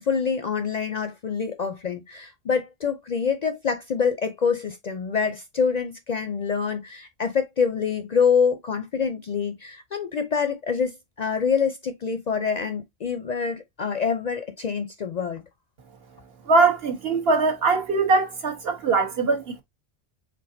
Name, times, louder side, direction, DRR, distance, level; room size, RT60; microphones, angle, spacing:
voice 1, 0.0-15.4, left 6 dB, 55° left, 0.5 m, -26 dB
voice 2, 16.4-19.6, right 3 dB, 65° right, 1.3 m, -21 dB
4.5 x 3.5 x 2.5 m
omnidirectional pair, 1.1 m